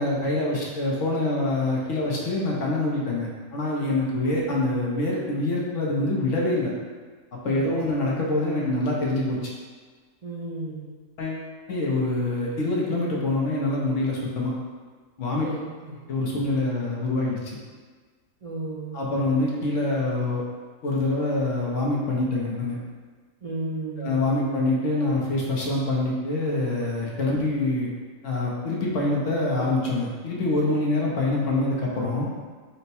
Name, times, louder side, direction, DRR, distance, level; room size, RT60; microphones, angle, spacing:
voice 1, 0.0-6.7 7.3-9.4 11.2-14.5 15.2-15.5 16.1-17.4 18.9-20.4 20.8-22.8 24.0-27.9 28.2-32.3, left 2 dB, 65° left, -3 dB, 1.0 m, -25 dB
voice 2, 7.4-7.8 10.2-10.9 15.4-16.0 18.4-19.0 23.4-24.5 27.3-27.5, right 2 dB, 50° right, -8 dB, 0.4 m, -34 dB
4.3 x 2.1 x 4.1 m, 1.5 s
omnidirectional pair, 1.5 m